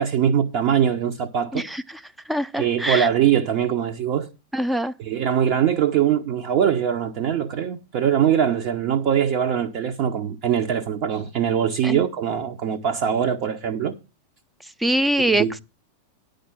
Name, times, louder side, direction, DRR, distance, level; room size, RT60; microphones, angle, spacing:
voice 1, 0.0-1.6 2.6-4.3 5.0-14.0 15.4-15.6, right 9 dB, 45° right, 0.9 m, -22 dB
voice 2, 2.3-3.1 4.5-4.9 11.8-12.0 14.8-15.6, right 1 dB, 5° right, 0.6 m, -23 dB
10.0 x 5.2 x 7.3 m
figure-of-eight pair, 90°, 0 cm